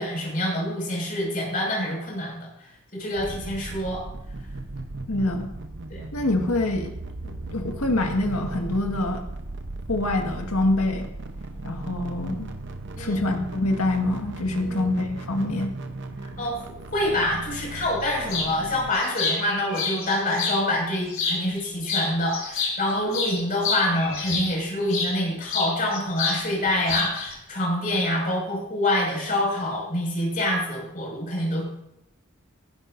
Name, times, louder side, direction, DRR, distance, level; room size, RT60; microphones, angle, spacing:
voice 1, 0.0-2.5 2.9-4.0 5.9-6.0 13.0-13.3 14.6-14.9 16.4-31.6, left 1 dB, 40° left, -3 dB, 5.7 m, -26 dB
sound 1, 3.2-18.9, right 2 dB, 55° right, 0.8 m, -37 dB
voice 2, 5.1-5.5 6.1-7.0 7.2-9.2 9.9-11.0 11.6-12.5 13.0-15.7, left 2 dB, 80° left, 2 dB, 1.8 m, -25 dB
sound 2, 18.3-18.5 18.9-20.6 21.1-21.6 21.9-25.1 25.5-26.4 26.7-27.3, left 4 dB, 60° left, 5.4 m, -28 dB
17.5 x 11.5 x 2.6 m, 0.82 s
head